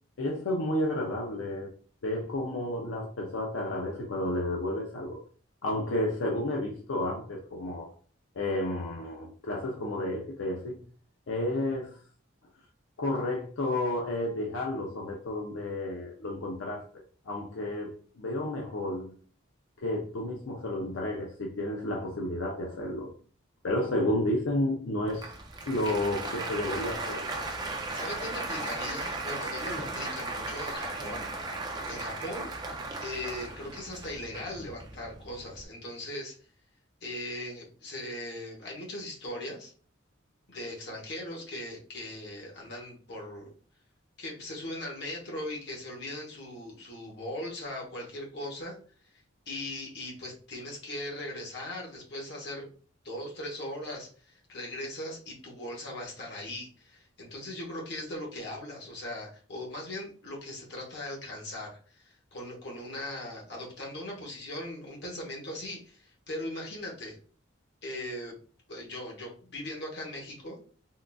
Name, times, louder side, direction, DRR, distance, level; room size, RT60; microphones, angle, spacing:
voice 1, 0.2-1.7 2.0-5.2 5.6-7.9 8.3-10.8 11.3-12.0 13.0-19.1 19.8-23.1 23.6-25.3 25.7-27.3, left 1 dB, 80° left, 0.5 m, -31 dB
Applause, 25.0-35.6, right 2 dB, 20° right, 0.4 m, -36 dB
voice 2, 27.7-31.3 31.7-32.5 33.0-36.3 37.0-39.7 40.5-43.5 44.2-48.8 49.5-52.7 53.0-67.2 67.8-68.4 68.7-70.6, left 1 dB, 55° left, 1.0 m, -39 dB
3.7 x 2.4 x 2.2 m
head